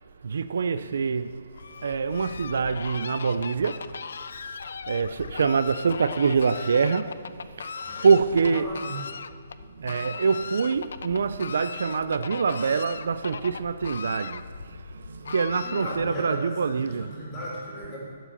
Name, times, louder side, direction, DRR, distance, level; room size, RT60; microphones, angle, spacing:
voice 1, 0.2-1.4 1.8-3.9 4.9-7.7 8.0-8.7 9.8-17.1, right 5 dB, 65° right, 0.3 m, -25 dB
Fowl, 1.5-16.3, left 5 dB, 65° left, 0.4 m, -38 dB
voice 2, 7.8-9.0 15.6-18.0, equal, 15° left, 2.3 m, -37 dB
11.0 x 4.9 x 6.6 m
hypercardioid pair, 180°, 0 cm